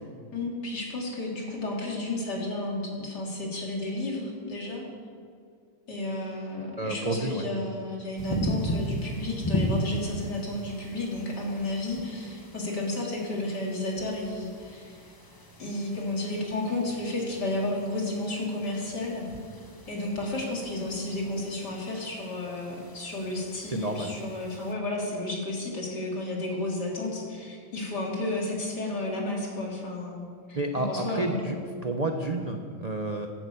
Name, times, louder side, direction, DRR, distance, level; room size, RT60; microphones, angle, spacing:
voice 1, 0.3-4.9 5.9-15.0 15.6-19.2 19.9-31.6, left 2 dB, 60° left, -2 dB, 3.7 m, -32 dB
voice 2, 6.8-7.4 23.7-24.1 30.5-31.6 31.8-33.3, right 2 dB, 40° right, 4 dB, 0.6 m, -30 dB
sound 1, 8.2-24.7, equal, 15° left, 0.9 m, -37 dB
12.0 x 11.0 x 8.5 m, 2.2 s
omnidirectional pair, 2.0 m